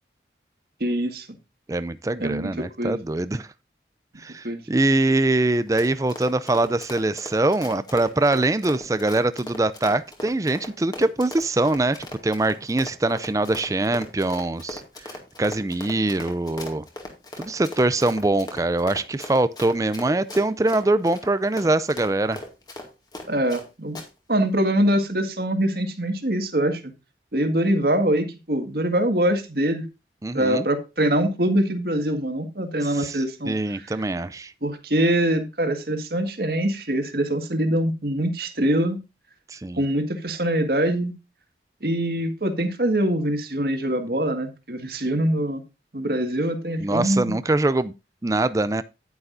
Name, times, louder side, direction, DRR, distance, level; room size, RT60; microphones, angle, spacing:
voice 1, 0.8-1.3 2.2-2.5 2.8-3.0 4.4-4.6 23.3-24.0 24.3-26.9 27.3-29.8 30.3-33.8 34.6-39.0 39.8-41.1 41.8-45.6 45.9-47.4, right 1 dB, 55° right, 1.8 m, -23 dB
voice 2, 1.7-3.5 4.2-12.0 12.2-16.9 17.4-22.4 30.2-30.7 32.8-34.5 39.5-39.8 46.8-47.9 48.2-48.8, right 2 dB, 20° right, 0.4 m, -23 dB
Run, 5.5-23.6 23.9-24.1, left 1 dB, 20° left, 2.1 m, -38 dB
10.5 x 9.7 x 2.6 m
head